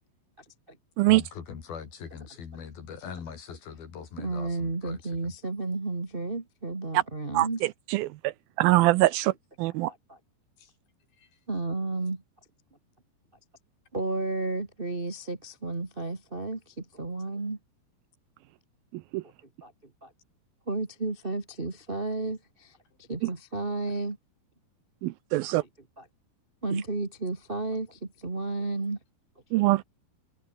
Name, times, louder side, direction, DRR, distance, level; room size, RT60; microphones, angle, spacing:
voice 1, 1.0-5.0, left 7 dB, 65° left, 5.4 m, -41 dB
voice 2, 4.2-7.6 9.9-10.2 11.5-12.2 13.9-17.6 19.6-19.7 20.0-20.1 20.7-22.7 23.1-24.2 26.0-26.1 26.6-29.0, right 3 dB, 25° right, 1.1 m, -32 dB
voice 3, 8.6-9.3 9.6-9.9 19.1-19.2 25.0-25.6 29.5-29.8, right 18 dB, 80° right, 2.3 m, -22 dB
omnidirectional pair, 4.5 m